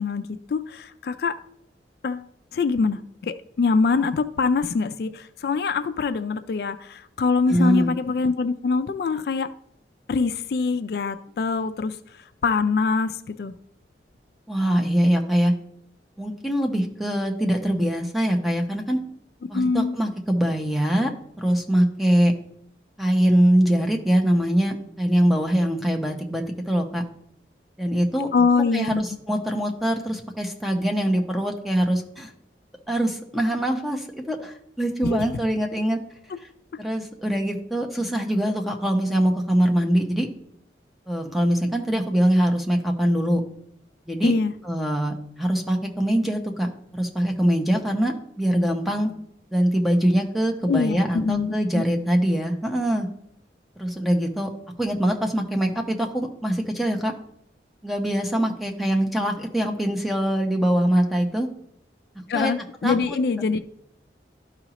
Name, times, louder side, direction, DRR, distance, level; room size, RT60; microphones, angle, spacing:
voice 1, 0.0-1.4 2.0-2.3 2.5-9.5 10.1-12.0 12.4-13.5 19.5-20.0 28.3-29.0 35.0-35.3 36.3-36.4 44.2-44.5 50.7-51.9 62.3-63.6, left 4 dB, 60° left, 11 dB, 0.3 m, -24 dB
voice 2, 7.5-7.9 14.5-15.5 16.2-19.0 19.5-21.1 21.4-22.3 23.0-27.0 27.8-28.3 28.7-32.3 32.9-36.0 36.8-40.3 41.1-43.4 44.1-44.3 44.6-49.1 49.5-53.1 53.8-54.5 54.8-57.1 57.8-61.5 62.3-62.5 62.8-63.2, equal, ahead, 2 dB, 0.7 m, -23 dB
12.0 x 4.8 x 3.0 m, 0.72 s
head